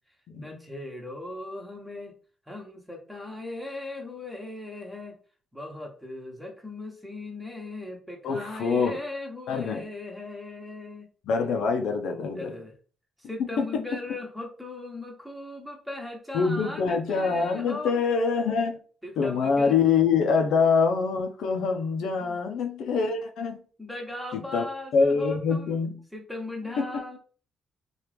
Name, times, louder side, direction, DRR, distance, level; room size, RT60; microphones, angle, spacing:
voice 1, 0.3-2.1 2.5-5.2 5.5-11.1 12.3-12.7 13.2-17.9 19.0-19.8 22.2-22.4 23.8-25.8 26.1-27.2, left 2 dB, ahead, 1.0 m, -38 dB
voice 2, 8.2-9.0 9.5-9.8 11.2-12.5 13.6-13.8 16.3-18.8 19.2-23.6 24.3-24.6 24.9-26.0 26.8-26.9, left 5 dB, 80° left, 0.5 m, -25 dB
2.9 x 2.4 x 3.3 m
cardioid pair, 90°, 0 cm